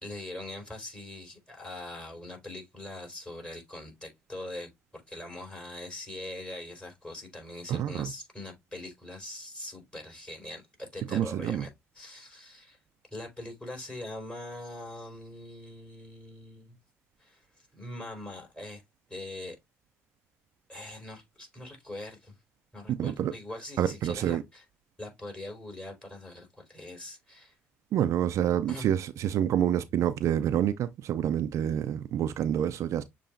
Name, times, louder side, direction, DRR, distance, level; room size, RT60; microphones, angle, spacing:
voice 1, 0.0-11.7 12.0-12.8 13.1-16.8 17.2-18.8 19.1-19.6 20.7-22.3 22.7-24.6 25.0-27.5 28.7-28.9, left 1 dB, 15° left, 3.7 m, -42 dB
voice 2, 7.7-8.1 11.1-11.7 23.0-23.3 23.8-24.4 27.9-33.0, right 10 dB, 60° right, 0.5 m, -27 dB
6.8 x 3.0 x 2.5 m
supercardioid pair, 65°, 6 cm